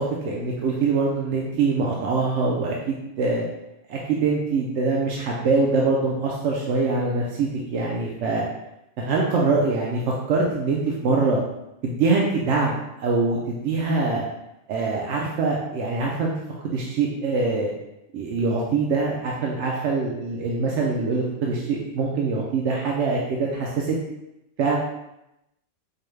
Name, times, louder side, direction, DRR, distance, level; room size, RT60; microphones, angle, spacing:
voice 1, 0.0-3.4 3.9-8.4 9.0-10.0 10.3-11.4 11.8-14.3 14.7-16.3 16.6-17.7 18.1-24.0 24.6-24.8, right 4 dB, 70° right, -3 dB, 0.9 m, -24 dB
4.6 x 2.2 x 3.1 m, 0.88 s
omnidirectional pair, 1.3 m